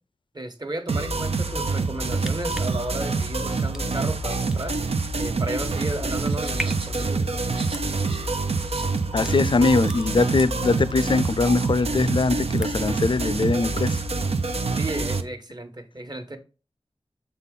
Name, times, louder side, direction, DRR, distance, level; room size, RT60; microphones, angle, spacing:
voice 1, 0.3-4.8 5.2-7.4 14.7-16.4, right 1 dB, 45° right, 1.2 m, -34 dB
sound 1, 0.9-15.2, right 3 dB, 80° right, 0.7 m, -26 dB
sound 2, 2.2-11.0 11.3-12.0 12.3-13.0 13.4-13.5, equal, 5° right, 0.5 m, -40 dB
sound 3, 6.2-8.3 8.6-8.9 9.6-9.7, right 3 dB, 65° right, 1.2 m, -42 dB
voice 2, 9.1-14.0, left 3 dB, 55° left, 0.5 m, -22 dB
6.9 x 4.1 x 3.8 m
wide cardioid pair, 60°, 10 cm